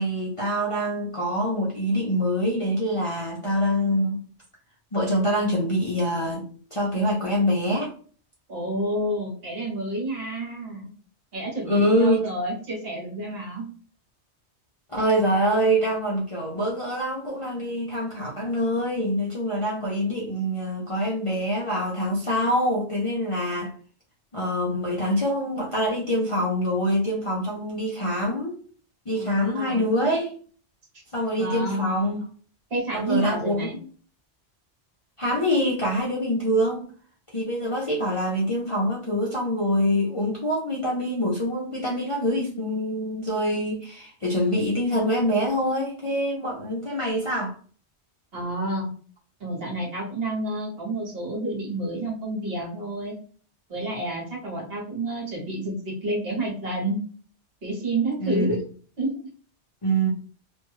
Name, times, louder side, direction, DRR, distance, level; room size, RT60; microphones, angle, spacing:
voice 1, 0.0-4.2 4.9-7.9 11.6-12.2 14.9-23.7 24.3-28.6 29.1-30.3 31.1-32.2 32.9-33.8 35.2-36.8 37.3-47.5 58.2-58.5 59.8-60.1, equal, 40° left, -5 dB, 0.5 m, -25 dB
voice 2, 8.5-10.9 11.3-13.7 29.2-29.8 31.4-31.9 32.7-33.7 48.3-48.9 49.4-53.1 53.7-57.0 57.6-58.6 59.0-59.2, right 1 dB, 60° right, -2 dB, 1.3 m, -29 dB
2.6 x 2.2 x 3.0 m, 0.43 s
omnidirectional pair, 1.2 m